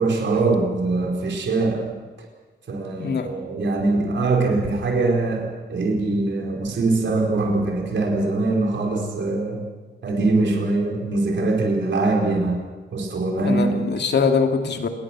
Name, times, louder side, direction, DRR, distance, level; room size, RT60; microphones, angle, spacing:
voice 1, 0.0-1.9 2.7-9.6 10.0-13.7, right 3 dB, 75° right, 1 dB, 4.7 m, -22 dB
voice 2, 13.4-14.9, left 5 dB, 60° left, 5 dB, 2.5 m, -22 dB
29.0 x 20.0 x 6.2 m, 1.4 s
wide cardioid pair, 180°, 19 cm